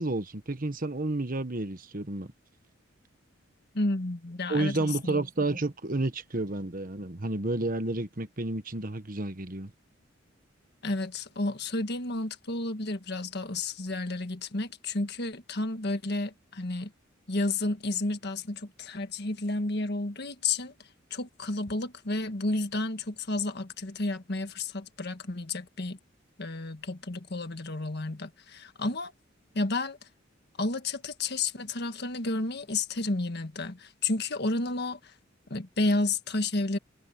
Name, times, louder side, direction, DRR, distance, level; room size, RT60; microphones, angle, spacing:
voice 1, 0.0-2.3 4.5-9.7, right 2 dB, 45° right, 1.3 m, -31 dB
voice 2, 3.7-5.2 10.8-16.9 17.3-26.0 26.4-29.1 29.5-30.0 30.6-35.1 35.5-36.8, left 2 dB, 55° left, 1.6 m, -31 dB
head